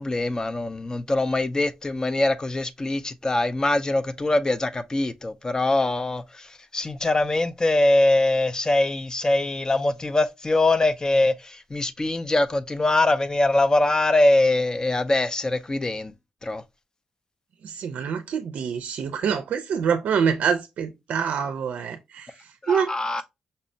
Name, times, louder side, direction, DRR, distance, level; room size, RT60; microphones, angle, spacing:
voice 1, 0.0-6.5 6.7-16.1 16.4-16.6 22.6-23.2, left 2 dB, 30° left, 0.4 m, -23 dB
voice 2, 17.6-23.2, right 7 dB, 75° right, 0.4 m, -26 dB
5.3 x 2.1 x 2.6 m
supercardioid pair, 55°, 3 cm